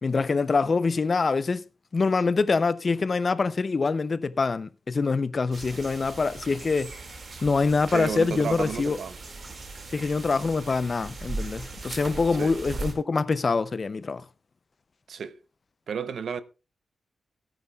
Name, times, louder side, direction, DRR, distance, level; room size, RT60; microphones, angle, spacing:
voice 1, 0.0-1.7 1.9-7.0 7.4-9.0 9.9-14.2, left 4 dB, 35° left, 0.5 m, -25 dB
sound 1, 5.5-12.9, right 3 dB, 45° right, 2.1 m, -39 dB
voice 2, 7.9-9.2 12.4-12.6 15.1-15.4 15.9-16.4, right 6 dB, 65° right, 0.7 m, -32 dB
17.5 x 9.8 x 2.3 m
wide cardioid pair, 160°, 0 cm